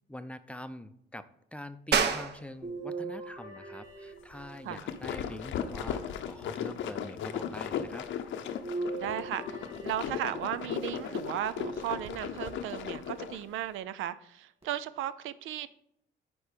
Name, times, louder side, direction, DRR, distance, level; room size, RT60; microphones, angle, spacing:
voice 1, 0.1-8.1, left 1 dB, 5° left, 11 dB, 0.5 m, -45 dB
sound 1, 1.9-12.1, right 6 dB, 60° right, 0.9 m, -38 dB
sound 2, 2.6-4.9 5.6-6.6 8.6-10.7 11.6-12.5 13.1-13.2 14.6-14.7, right 3 dB, 30° right, 2.8 m, -41 dB
sound 3, 4.5-13.4, left 8 dB, 75° left, 0.7 m, -36 dB
voice 2, 9.0-9.4 9.8-15.7, right 12 dB, 85° right, 15 dB, 0.5 m, -35 dB
9.5 x 4.5 x 5.1 m, 0.75 s
cardioid pair, 90°, 20 cm